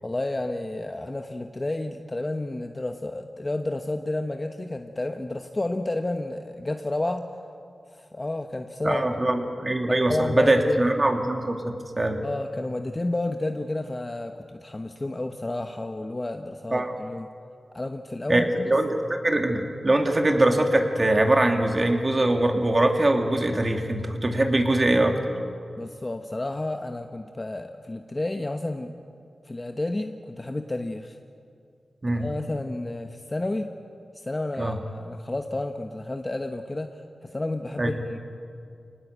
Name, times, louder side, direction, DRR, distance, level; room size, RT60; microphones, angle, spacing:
voice 1, 0.0-7.3 7.9-9.1 9.9-10.8 12.2-17.3 17.7-18.7 25.8-29.0 29.4-31.2 32.1-33.7 34.1-38.2, left 2 dB, 30° left, 5 dB, 1.1 m, -31 dB
voice 2, 8.8-12.2 16.7-16.9 18.3-25.2 32.0-32.3 34.6-34.8 37.8-37.9, right 1 dB, 35° right, 4 dB, 2.6 m, -22 dB
24.5 x 19.5 x 8.2 m, 2.4 s
wide cardioid pair, 65°, 0 cm